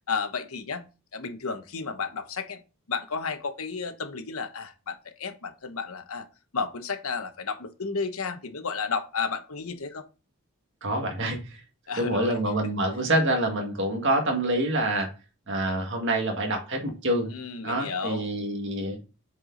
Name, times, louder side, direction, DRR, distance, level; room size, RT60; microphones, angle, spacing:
voice 1, 0.1-0.8 1.1-2.6 2.9-6.3 6.5-10.0 11.9-12.4 17.3-18.3, left 5 dB, 75° left, 8 dB, 1.0 m, -32 dB
voice 2, 10.8-11.6 11.9-15.1 15.5-17.3 17.6-19.0, right 1 dB, 55° right, 2 dB, 1.9 m, -26 dB
7.6 x 4.7 x 3.9 m, 0.31 s
head